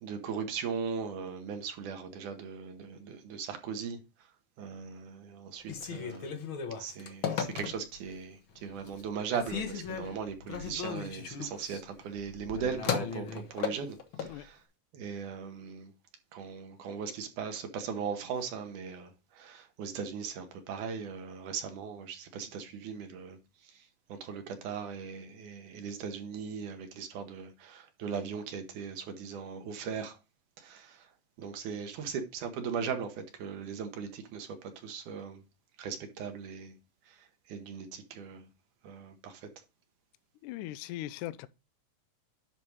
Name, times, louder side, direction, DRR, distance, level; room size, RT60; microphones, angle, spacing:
voice 1, 0.0-4.0 4.6-6.4 6.8-14.6 14.9-15.9 16.3-23.4 24.1-30.2 30.6-31.1 31.4-35.4 35.8-36.8 37.1-37.2 37.5-38.5 38.8-39.5, right 6 dB, 70° right, 2.5 m, -38 dB
Telephone, 5.6-8.1 8.6-9.1 9.3-14.4, left 7 dB, 60° left, 1.4 m, -36 dB
voice 2, 40.4-41.5, left 14 dB, 80° left, 2.0 m, -39 dB
10.5 x 4.3 x 4.7 m
omnidirectional pair, 3.8 m